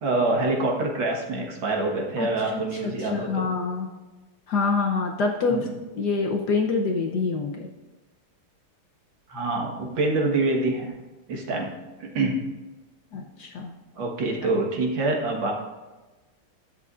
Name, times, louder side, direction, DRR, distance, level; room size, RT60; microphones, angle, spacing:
voice 1, 0.0-3.5 5.5-5.7 9.3-10.9 11.3-11.7 12.0-12.4 14.0-15.5, right 2 dB, 65° right, 1 dB, 2.1 m, -25 dB
voice 2, 2.2-3.9 4.5-5.7 6.0-7.7 13.1-13.7, left 4 dB, 60° left, 2 dB, 1.2 m, -26 dB
20.5 x 6.9 x 2.5 m, 1.2 s
omnidirectional pair, 2.3 m